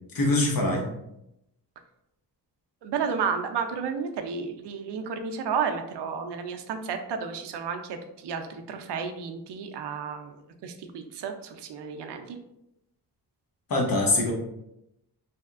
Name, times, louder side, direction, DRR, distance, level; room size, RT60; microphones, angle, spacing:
voice 1, 0.1-0.8 13.7-14.3, left 2 dB, 55° left, 0 dB, 0.9 m, -23 dB
voice 2, 2.8-8.0 8.2-10.4 10.6-12.4, right 6 dB, 80° right, 6 dB, 0.5 m, -32 dB
3.3 x 2.8 x 2.4 m, 0.83 s
cardioid pair, 95°, 40 cm